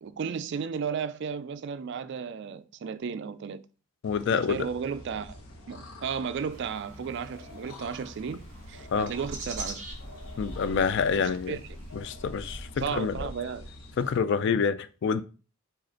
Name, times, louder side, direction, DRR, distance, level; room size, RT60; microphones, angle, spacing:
voice 1, 0.0-3.6 4.3-5.4 5.7-8.4 8.7-9.8 11.1-11.6 12.8-13.7, right 6 dB, 50° right, 0.3 m, -34 dB
sound 1, 4.0-14.2, equal, 75° left, 0.9 m, -44 dB
voice 2, 4.0-4.6 8.9-9.1 10.4-11.6 11.9-13.3 14.0-15.2, left 6 dB, 50° left, 0.3 m, -27 dB
sound 2, 6.5-12.7, right 3 dB, 35° right, 1.4 m, -46 dB
4.9 x 2.4 x 4.3 m
head